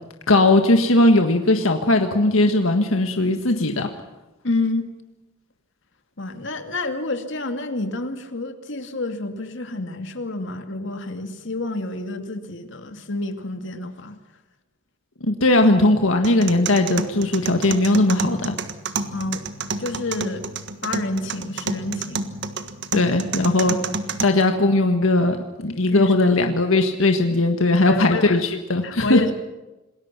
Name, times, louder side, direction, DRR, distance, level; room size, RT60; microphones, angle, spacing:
voice 1, 0.3-3.9 15.2-18.5 22.9-23.8 24.2-29.2, left 2 dB, 90° left, 5 dB, 1.7 m, -18 dB
voice 2, 4.4-4.9 6.2-14.2 19.1-19.4 19.7-20.4 20.8-22.2 23.0-23.1 25.9-26.3 27.8-28.4 28.8-29.3, left 2 dB, 65° left, 7 dB, 2.4 m, -28 dB
sound 1, 16.2-24.2, right 4 dB, 60° right, 1.6 m, -30 dB
27.5 x 20.5 x 6.0 m, 1.1 s
head